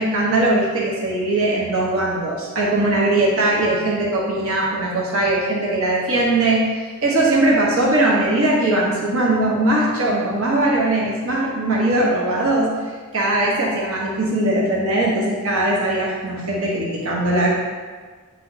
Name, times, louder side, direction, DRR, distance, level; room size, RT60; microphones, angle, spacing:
voice 1, 0.0-6.6 7.0-12.7 13.1-17.5, right 2 dB, 70° right, -4 dB, 1.2 m, -20 dB
8.5 x 3.3 x 4.0 m, 1.5 s
head